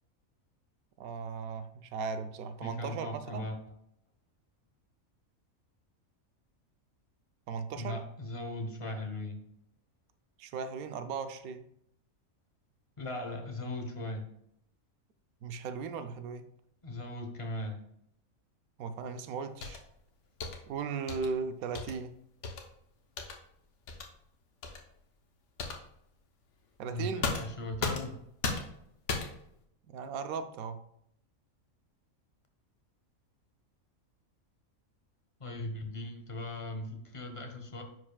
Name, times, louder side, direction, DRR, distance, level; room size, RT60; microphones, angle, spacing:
voice 1, 1.0-3.5 7.5-8.0 10.4-11.6 15.4-16.4 18.8-19.8 20.7-22.1 26.8-27.3 29.9-30.8, right 5 dB, 85° right, 10 dB, 1.0 m, -37 dB
voice 2, 2.6-3.6 7.8-9.4 13.0-14.3 16.8-17.8 26.9-28.1 35.4-37.8, left 1 dB, 30° left, 4 dB, 0.6 m, -38 dB
sound 1, 19.6-19.9 20.4-20.6 21.1-21.3 21.8-22.0 22.4-22.7 23.2-23.3 23.9-24.1 24.6-24.8 25.6-25.8 27.2-28.2 28.4-28.8 29.1-29.5, left 4 dB, 60° left, 1.2 m, -35 dB
9.8 x 4.8 x 2.3 m, 0.74 s
omnidirectional pair, 1.5 m